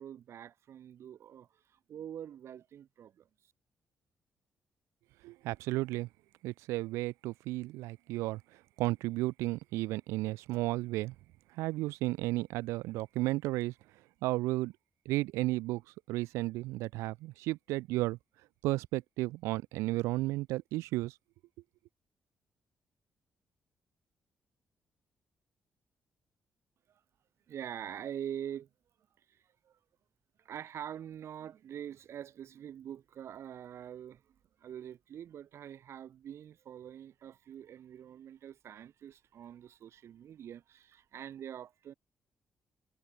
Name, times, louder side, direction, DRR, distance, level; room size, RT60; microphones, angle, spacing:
voice 1, 0.0-3.3 27.5-28.7 29.3-29.8 30.4-34.3 34.6-41.9, right 9 dB, 65° right, 2.7 m, -45 dB
voice 2, 5.2-6.1 6.4-11.1 11.5-13.7 14.2-14.7 15.1-15.8 16.1-18.2 18.6-21.1, right 19 dB, 85° right, 0.5 m, -33 dB
hypercardioid pair, 45°, 5 cm